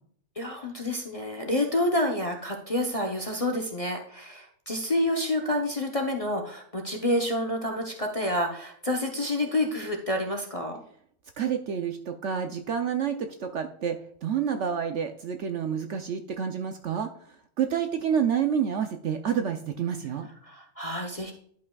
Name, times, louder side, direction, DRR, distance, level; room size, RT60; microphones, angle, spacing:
voice 1, 0.4-10.8 20.4-21.3, left 1 dB, 30° left, 2 dB, 0.7 m, -28 dB
voice 2, 11.4-17.1 17.6-20.3, right 8 dB, 60° right, 6 dB, 0.8 m, -28 dB
11.5 x 5.5 x 2.3 m, 0.63 s
omnidirectional pair, 1.6 m